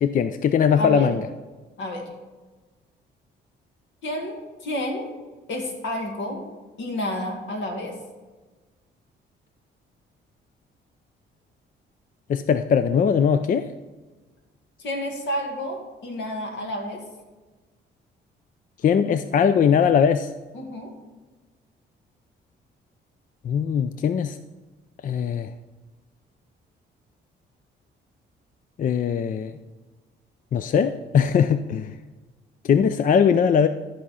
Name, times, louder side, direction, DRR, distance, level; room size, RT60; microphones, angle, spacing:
voice 1, 0.0-1.2 12.3-13.7 18.8-20.3 23.4-24.4 25.0-25.5 28.8-29.6 30.5-32.0 32.6-33.7, left 7 dB, 45° left, 11 dB, 0.4 m, -20 dB
voice 2, 0.8-1.1 1.8-2.0 4.0-5.1 5.5-6.4 6.8-8.0 14.8-17.0 20.5-20.9, left 1 dB, 75° left, 2 dB, 2.1 m, -30 dB
13.0 x 5.0 x 5.5 m, 1.3 s
cardioid pair, 90°, 20 cm